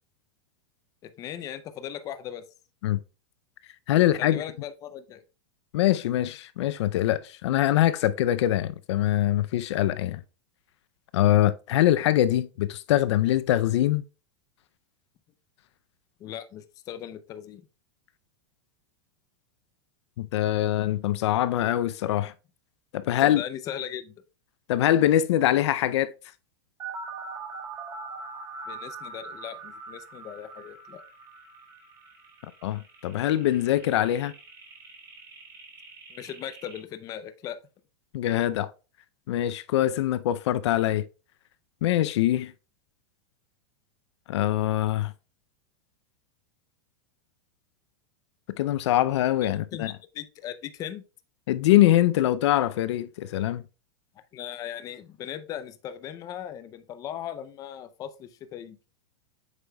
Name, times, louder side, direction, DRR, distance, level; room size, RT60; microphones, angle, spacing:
voice 1, 1.0-2.4 4.2-5.2 16.2-17.6 23.2-24.1 28.7-31.0 36.1-37.6 49.4-51.0 54.3-58.8, left 10 dB, 25° left, 0.5 m, -38 dB
voice 2, 3.9-4.4 5.7-10.2 11.1-14.0 20.2-22.3 22.9-23.4 24.7-26.1 32.6-34.3 38.1-38.7 39.3-41.0 41.8-42.5 44.3-45.1 48.6-49.9 51.5-53.6, left 13 dB, 75° left, 0.5 m, -23 dB
sound 1, 26.8-36.8, right 4 dB, 20° right, 1.7 m, -42 dB
8.1 x 5.4 x 2.2 m
supercardioid pair, 155°, 15 cm